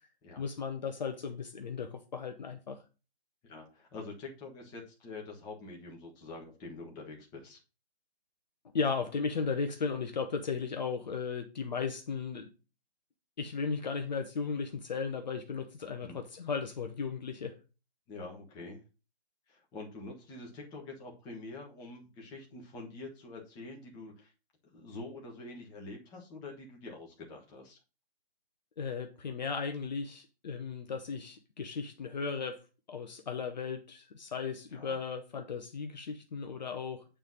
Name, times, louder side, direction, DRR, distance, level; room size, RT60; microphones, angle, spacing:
voice 1, 0.4-2.8 8.7-12.5 13.4-17.6 28.8-32.6 32.9-37.1, left 5 dB, 40° left, 1.0 m, -36 dB
voice 2, 3.4-7.6 16.0-16.2 18.1-18.8 19.5-24.3 24.7-27.8 34.7-35.0, left 3 dB, 10° left, 1.4 m, -46 dB
9.0 x 3.4 x 5.6 m
figure-of-eight pair, 155°, 32 cm